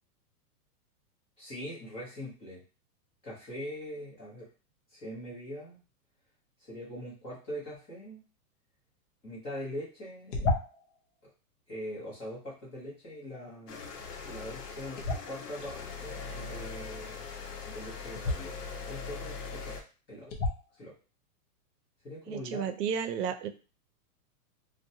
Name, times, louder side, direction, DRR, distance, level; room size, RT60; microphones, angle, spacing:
voice 1, 1.4-2.6 3.2-4.5 4.9-5.8 6.6-8.2 9.2-10.5 11.7-13.8 14.2-17.3 17.6-18.5 18.9-19.7 20.1-20.3 20.8-21.0 22.0-22.8, equal, 15° left, -7 dB, 0.8 m, -42 dB
sound 1, 10.3-11.0 15.0-15.6 18.1-18.4 19.3-19.4 20.3-20.8, left 2 dB, 50° left, 0.7 m, -31 dB
sound 2, 13.7-19.8, left 5 dB, 85° left, 0.8 m, -41 dB
voice 2, 22.3-23.5, right 7 dB, 90° right, 8 dB, 0.6 m, -32 dB
2.6 x 2.2 x 2.6 m, 0.34 s
hypercardioid pair, 165°, 47 cm